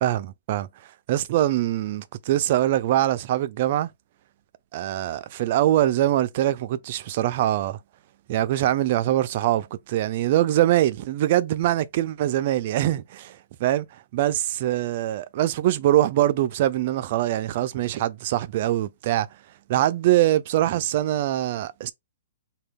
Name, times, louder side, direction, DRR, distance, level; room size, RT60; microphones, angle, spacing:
voice 1, 0.0-0.7 1.1-3.9 4.7-7.8 8.3-13.9 14.1-19.3 19.7-21.9, right 13 dB, 45° right, 0.4 m, -23 dB
3.6 x 2.3 x 3.5 m
hypercardioid pair, 155°, 0 cm